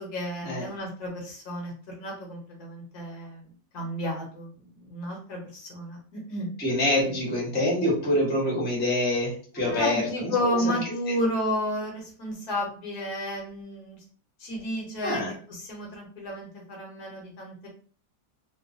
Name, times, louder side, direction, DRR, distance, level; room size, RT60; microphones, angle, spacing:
voice 1, 0.0-3.4 3.7-6.5 9.5-14.0 14.4-15.2 15.5-17.7, equal, 65° left, -1 dB, 1.2 m, -32 dB
voice 2, 6.6-10.7 15.0-15.3, left 1 dB, 10° left, -4 dB, 0.6 m, -26 dB
3.0 x 2.1 x 2.5 m, 0.43 s
omnidirectional pair, 2.0 m